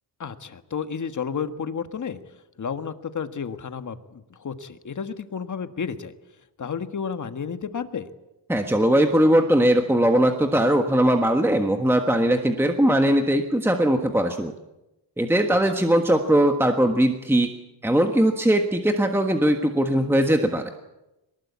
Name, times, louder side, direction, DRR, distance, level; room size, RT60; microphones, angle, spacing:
voice 1, 0.2-2.2 2.6-6.1 6.6-8.1, left 6 dB, 40° left, 9 dB, 1.6 m, -31 dB
voice 2, 8.5-14.5 15.2-17.5 17.8-20.7, right 1 dB, 5° right, 5 dB, 1.4 m, -20 dB
23.0 x 20.0 x 8.4 m, 0.94 s
wide cardioid pair, 135°, 44 cm